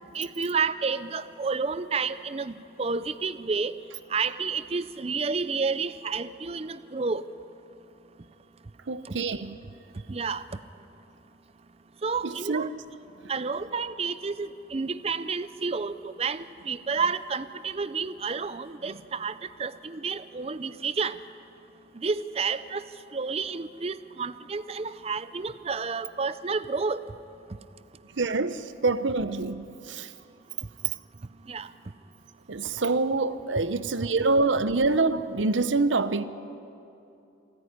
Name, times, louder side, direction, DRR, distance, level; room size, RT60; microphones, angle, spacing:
voice 1, 0.1-3.7 4.1-7.2 9.1-9.2 10.1-10.4 12.0-12.7 13.3-21.2 21.9-22.8 23.1-27.0 31.5-31.7, right 5 dB, 30° right, 0.5 m, -30 dB
voice 2, 8.9-9.5 12.2-12.7 28.2-30.1 32.5-36.2, right 3 dB, 80° right, 0.8 m, -26 dB
27.5 x 9.6 x 10.0 m
head